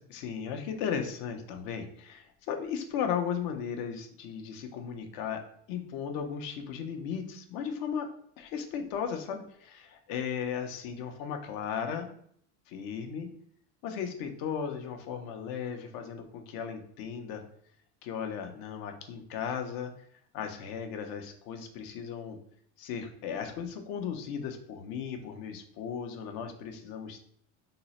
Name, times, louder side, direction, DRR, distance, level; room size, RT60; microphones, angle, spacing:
voice 1, 0.1-5.4 5.7-8.1 8.4-12.1 12.7-13.3 13.8-17.4 18.0-19.9 20.3-22.4 22.8-27.3, left 7 dB, 70° left, 6 dB, 0.7 m, -36 dB
3.7 x 2.1 x 4.1 m, 0.65 s
supercardioid pair, 115°, 37 cm